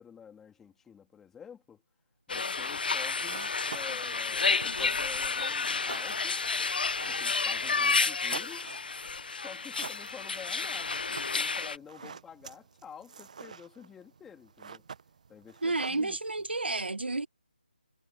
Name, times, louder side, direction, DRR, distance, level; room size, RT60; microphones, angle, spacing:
voice 1, 0.0-1.8 2.3-6.4 7.0-8.7 9.3-14.9 15.3-16.2, left 7 dB, 5° left, 3.1 m, -49 dB
sound 1, 2.3-11.8, left 4 dB, 60° left, 0.7 m, -31 dB
sound 2, 3.0-16.6, right 6 dB, 45° right, 1.1 m, -48 dB
voice 2, 15.6-17.3, right 3 dB, 85° right, 1.2 m, -31 dB
figure-of-eight pair, 160°, 6 cm